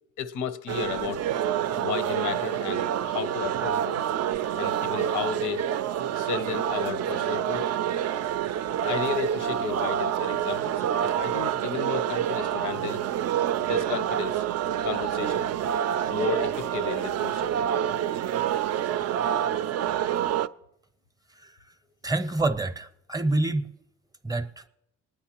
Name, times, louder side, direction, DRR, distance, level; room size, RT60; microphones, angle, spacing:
voice 1, 0.2-1.2 1.8-4.0 4.5-5.8 6.1-7.8 8.8-13.1 13.6-14.4 14.8-15.5 16.1-17.6, left 7 dB, 80° left, 0.6 m, -33 dB
sound 1, 0.7-20.5, right 10 dB, 55° right, 0.4 m, -27 dB
voice 2, 22.0-23.7 24.2-24.6, right 2 dB, 10° right, 0.6 m, -27 dB
25.5 x 9.9 x 2.9 m
cardioid pair, 90°, 30 cm